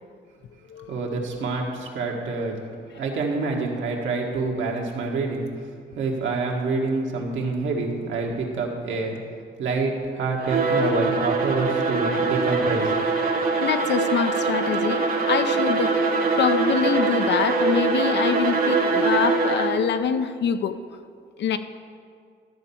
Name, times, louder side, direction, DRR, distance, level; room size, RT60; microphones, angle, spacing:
voice 1, 0.9-2.6 2.9-5.6 5.9-9.2 9.6-12.9, right 3 dB, 75° right, 0 dB, 1.7 m, -27 dB
Bowed string instrument, 10.4-19.9, right 4 dB, 45° right, 1.4 m, -23 dB
voice 2, 13.6-16.0 16.4-20.8 21.4-21.6, left 7 dB, 60° left, 10 dB, 0.6 m, -25 dB
13.0 x 4.3 x 7.1 m, 2.2 s
cardioid pair, 90°, 20 cm